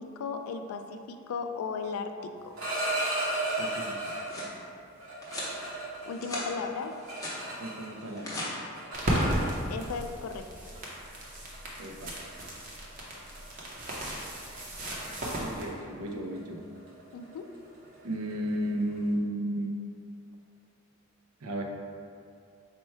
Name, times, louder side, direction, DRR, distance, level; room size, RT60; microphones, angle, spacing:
voice 1, 0.0-2.6 6.0-7.0 9.7-10.5 17.1-17.5, left 5 dB, 85° left, 7 dB, 0.3 m, -36 dB
sound 1, 2.4-4.5 5.0-8.1 8.3-9.9 10.8-10.9 11.2-11.6 12.0-12.3 12.6-12.9 13.1-13.4 13.7-19.0, right 1 dB, 70° right, 0.9 m, -36 dB
voice 2, 3.6-4.1 7.6-8.4 11.8-12.1 14.5-14.7 15.4-16.6 18.0-19.7 21.4-21.6, right 1 dB, 90° right, 2 dB, 0.5 m, -34 dB
sound 2, 4.1-4.5 5.2-5.5 6.0-6.5 6.8-7.4 8.0-8.5, left 1 dB, 15° left, 0.7 m, -39 dB
sound 3, 8.9-15.7, equal, 40° right, 0.7 m, -34 dB
4.3 x 2.2 x 4.4 m, 2.4 s
head